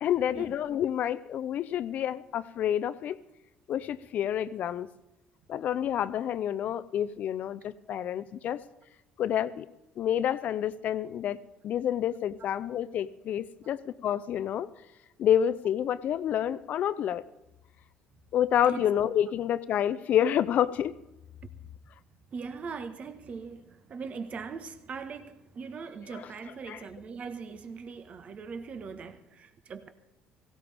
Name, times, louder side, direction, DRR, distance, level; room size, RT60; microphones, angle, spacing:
voice 1, 0.0-3.2 3.7-4.9 5.5-8.6 9.2-9.6 10.0-11.4 11.6-14.7 15.2-17.2 18.3-20.9 26.1-26.2 26.7-26.8, left 10 dB, 60° left, 0.7 m, -28 dB
voice 2, 22.3-29.9, right 5 dB, 45° right, 1.5 m, -40 dB
17.5 x 16.5 x 3.6 m
hypercardioid pair, 70°, 3 cm